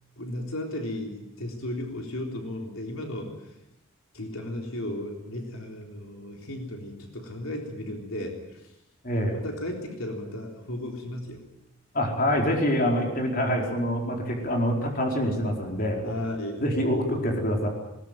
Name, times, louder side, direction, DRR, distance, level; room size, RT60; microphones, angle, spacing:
voice 1, 0.2-3.4 4.1-8.7 9.3-11.4 16.0-16.6, left 1 dB, 75° left, 2 dB, 3.8 m, -35 dB
voice 2, 9.0-9.3 11.9-16.1 16.6-17.7, equal, 40° left, 1 dB, 4.6 m, -25 dB
21.0 x 19.5 x 9.2 m, 0.90 s
head